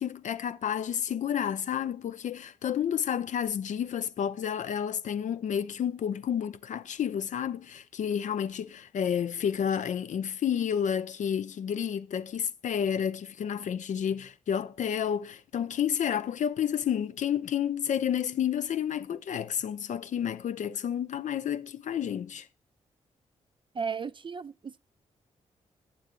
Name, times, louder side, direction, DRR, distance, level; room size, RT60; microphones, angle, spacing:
voice 1, 0.0-22.5, left 8 dB, 65° left, 0.5 m, -30 dB
voice 2, 23.7-24.8, right 6 dB, 40° right, 0.4 m, -35 dB
8.2 x 7.7 x 3.7 m
supercardioid pair, 45°, 13 cm